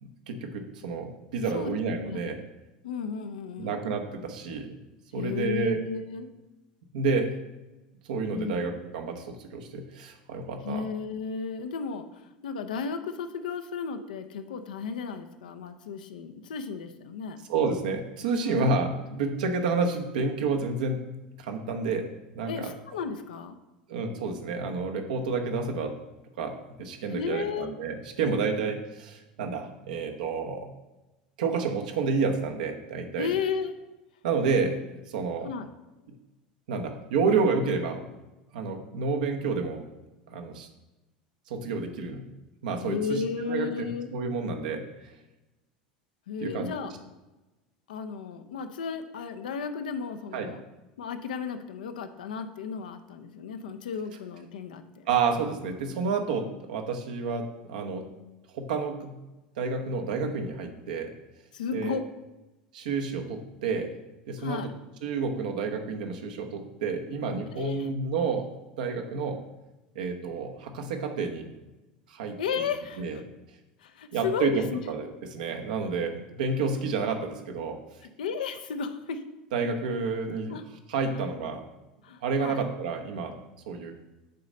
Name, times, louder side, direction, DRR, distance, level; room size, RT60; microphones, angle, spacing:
voice 1, 0.0-2.4 3.6-4.7 5.1-5.8 6.9-7.3 8.1-10.8 17.5-21.0 21.4-22.1 22.3-22.7 23.9-25.9 26.4-30.7 31.4-33.3 34.2-34.8 35.1-35.5 36.7-38.0 38.5-39.8 40.3-40.7 41.5-42.3 42.6-43.2 43.5-44.8 46.4-46.7 50.3-50.5 55.1-58.1 58.5-59.2 59.6-61.1 61.7-62.0 62.7-63.9 64.3-64.6 65.0-68.5 68.8-69.4 69.9-71.5 72.1-72.6 73.0-73.2 74.1-77.8 79.5-80.6 80.9-81.6 82.2-83.4 83.7-83.9, right 4 dB, 70° right, 4 dB, 0.9 m, -29 dB
voice 2, 2.8-3.8 5.1-6.3 8.3-8.7 10.6-17.4 18.4-18.7 22.5-23.6 27.1-27.7 33.2-33.7 35.4-35.7 42.8-44.1 46.3-46.9 47.9-50.6 51.0-55.0 61.5-62.1 64.4-64.7 67.5-67.9 72.4-73.2 73.8-74.8 78.2-79.2 80.5-80.6 82.0-82.6, left 6 dB, 75° left, 9 dB, 0.6 m, -34 dB
6.8 x 4.1 x 5.1 m, 1.1 s
hypercardioid pair, 85°, 5 cm